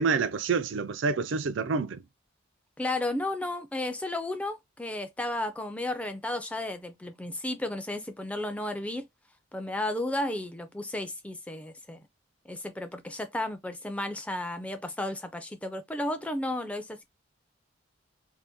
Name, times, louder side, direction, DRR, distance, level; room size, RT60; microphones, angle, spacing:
voice 1, 0.0-2.0, right 5 dB, 75° right, 0.4 m, -27 dB
voice 2, 2.8-9.1 9.5-12.0 12.5-17.0, left 1 dB, 5° left, 0.4 m, -33 dB
2.7 x 2.1 x 3.5 m
head